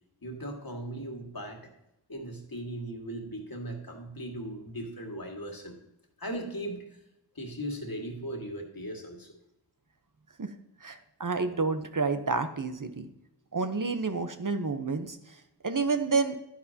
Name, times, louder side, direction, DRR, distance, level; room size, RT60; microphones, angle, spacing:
voice 1, 0.2-1.7 2.1-5.8 6.2-7.0 7.4-9.3, right 1 dB, 55° left, 2 dB, 2.0 m, -38 dB
voice 2, 10.8-13.1 13.5-15.2 15.6-16.3, right 4 dB, 50° right, 8 dB, 0.9 m, -29 dB
11.5 x 10.0 x 2.8 m, 0.86 s
wide cardioid pair, 60°, 43 cm